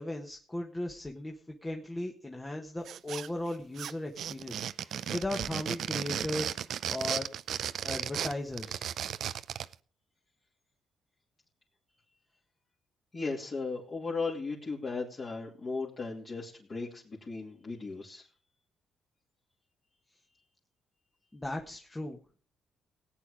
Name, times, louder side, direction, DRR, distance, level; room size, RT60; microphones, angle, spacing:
voice 1, 0.0-7.3 7.8-8.9 21.3-22.2, left 1 dB, 15° left, 1 dB, 1.4 m, -37 dB
sound 1, 2.9-3.5 3.8-9.7, right 9 dB, 65° right, 0.5 m, -35 dB
voice 2, 13.1-18.3, left 4 dB, 40° left, -5 dB, 2.9 m, -36 dB
17.5 x 8.6 x 5.1 m, 0.42 s
cardioid pair, 90°, 0 cm